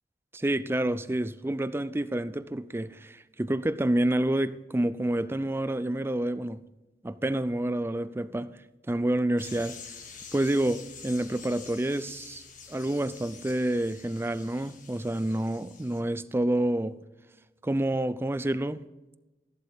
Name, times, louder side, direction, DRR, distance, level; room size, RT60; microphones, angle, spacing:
voice 1, 0.3-6.6 7.0-8.5 8.9-9.8 10.3-12.4 12.7-17.0 17.6-18.8, right 1 dB, 15° right, 0.4 m, -28 dB
sound 1, 9.4-16.0, left 5 dB, 50° left, 1.7 m, -47 dB
14.0 x 11.5 x 3.6 m
head